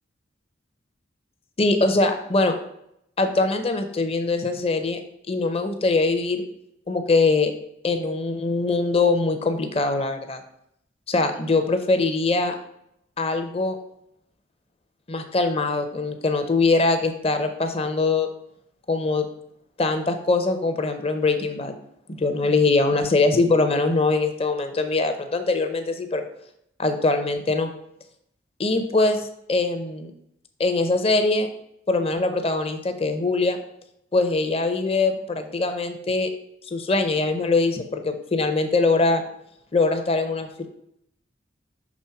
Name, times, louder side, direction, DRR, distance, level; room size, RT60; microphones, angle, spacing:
voice 1, 1.6-2.6 3.2-5.0 5.3-6.4 6.9-7.5 7.8-10.4 11.1-12.5 13.2-13.8 15.1-18.3 18.9-19.3 19.8-21.7 22.1-26.2 26.8-27.7 28.6-30.1 30.6-31.5 31.9-33.6 34.1-36.3 36.7-39.2 39.7-40.7, left 3 dB, 30° left, 7 dB, 0.7 m, -22 dB
6.2 x 3.4 x 5.6 m, 0.76 s
head